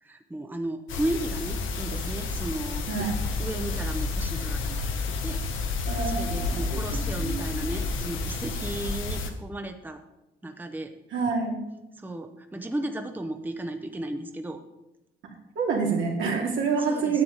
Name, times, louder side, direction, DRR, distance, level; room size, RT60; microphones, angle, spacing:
voice 1, 0.0-3.1 3.4-5.4 5.7-10.0 10.4-10.9 12.0-14.6 16.8-17.2, right 1 dB, 10° right, 6 dB, 0.7 m, -35 dB
sound 1, 0.9-9.3, left 3 dB, 80° left, 1.1 m, -30 dB
voice 2, 2.9-3.2 5.8-6.8 7.2-7.6 11.1-11.6 15.2-17.2, right 5 dB, 75° right, -1 dB, 2.4 m, -28 dB
9.7 x 7.7 x 3.9 m, 0.94 s
cardioid pair, 90°, 20 cm